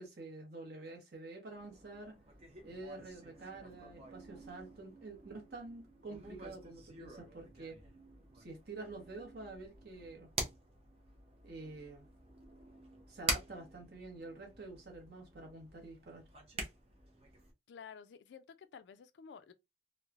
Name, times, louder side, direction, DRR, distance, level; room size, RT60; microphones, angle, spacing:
voice 1, 0.0-2.2 2.6-7.8 8.3-10.3 11.4-12.1 13.1-16.2, right 3 dB, 55° right, 0.9 m, -48 dB
sound 1, 1.5-17.5, right 2 dB, 35° right, 0.6 m, -46 dB
voice 2, 17.7-19.5, left 6 dB, 65° left, 0.3 m, -53 dB
3.0 x 2.1 x 2.4 m
head